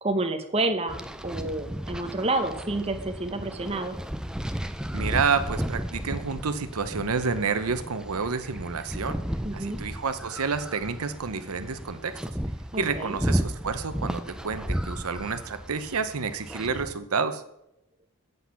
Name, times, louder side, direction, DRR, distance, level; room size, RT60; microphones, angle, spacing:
voice 1, 0.0-1.0 1.2-4.0 9.4-9.8 12.7-13.2, right 2 dB, 25° right, 7 dB, 0.9 m, -29 dB
sound 1, 0.9-16.9, equal, 5° right, 0.4 m, -34 dB
voice 2, 4.9-9.2 9.5-12.2 12.8-17.4, right 5 dB, 80° right, 10 dB, 0.8 m, -29 dB
8.2 x 7.9 x 5.7 m, 0.80 s
head